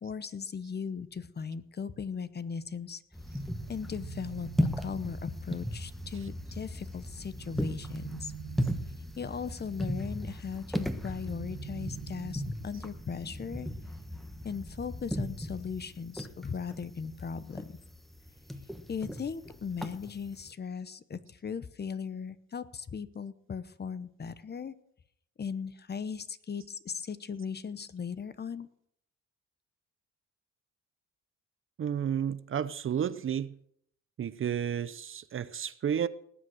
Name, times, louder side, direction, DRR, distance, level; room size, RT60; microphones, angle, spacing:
voice 1, 0.0-3.0 3.7-8.3 9.2-13.7 14.4-17.7 18.9-24.7 25.4-28.7, left 6 dB, 35° left, 0.9 m, -38 dB
sound 1, 3.1-20.5, equal, ahead, 1.2 m, -37 dB
sound 2, 3.5-5.5 7.2-9.1 10.9-12.8, right 11 dB, 70° right, 1.3 m, -46 dB
voice 2, 31.8-33.5 34.2-36.1, right 8 dB, 45° right, 0.7 m, -32 dB
19.0 x 7.6 x 6.4 m
cardioid pair, 90°, 30 cm